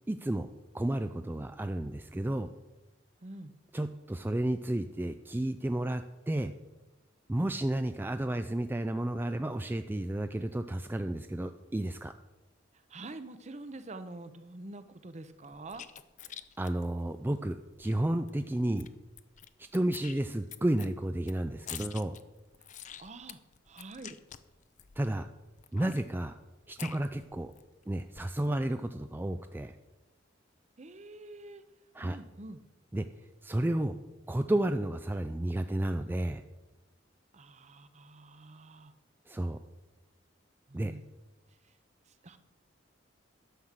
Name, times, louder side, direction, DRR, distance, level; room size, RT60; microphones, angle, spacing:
voice 1, 0.1-0.5 0.7-2.5 3.7-6.5 7.3-12.1 16.6-18.9 19.7-22.1 25.0-25.3 25.7-26.4 26.7-27.5 27.9-29.7 31.9-32.2 32.9-33.0 33.4-34.0 34.3-36.4 39.3-39.6 40.7-40.9, right 1 dB, 10° right, 8 dB, 0.3 m, -32 dB
voice 2, 3.2-3.5 12.9-15.8 23.0-23.4 23.7-24.2 30.8-31.6 32.0-32.6 37.3-38.9 40.7-41.0 42.1-42.4, right 2 dB, 35° right, 11 dB, 0.7 m, -46 dB
sound 1, 15.4-17.9 18.3-18.4 18.6-19.5 19.7-25.1 25.6-27.6 27.9-28.5, left 10 dB, 40° left, 0.5 m, -47 dB
11.5 x 6.3 x 7.4 m, 1.1 s
head